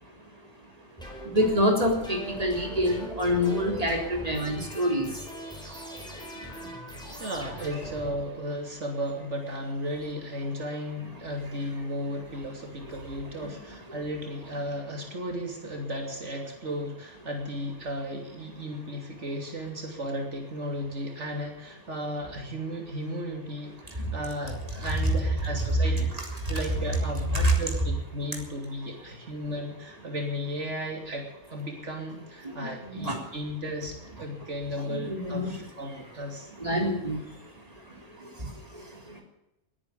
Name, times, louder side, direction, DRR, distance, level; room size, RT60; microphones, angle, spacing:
sound 1, 1.0-8.7, right 1 dB, 5° left, 4.9 m, -41 dB
voice 1, 1.3-5.1 13.4-13.5 24.0-24.1 27.3-27.5 32.4-33.2 34.9-35.5 36.6-37.2, equal, 30° right, 1 dB, 4.1 m, -26 dB
voice 2, 7.2-26.1 26.5-31.2 31.5-36.5, equal, 85° right, 2 dB, 3.4 m, -35 dB
20.5 x 10.0 x 6.9 m, 0.89 s
omnidirectional pair, 1.2 m